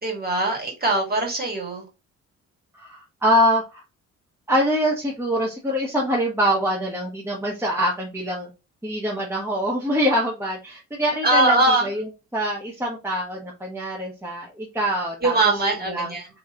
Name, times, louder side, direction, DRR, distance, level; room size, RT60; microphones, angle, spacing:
voice 1, 0.0-1.8 11.2-11.9 15.2-16.3, right 2 dB, 30° right, 1.9 m, -21 dB
voice 2, 2.7-3.8 4.5-8.5 8.8-11.6 11.8-12.0 12.3-15.3 15.8-16.1, equal, 10° right, 1.0 m, -24 dB
3.1 x 2.9 x 3.7 m
cardioid pair, 90°, 30 cm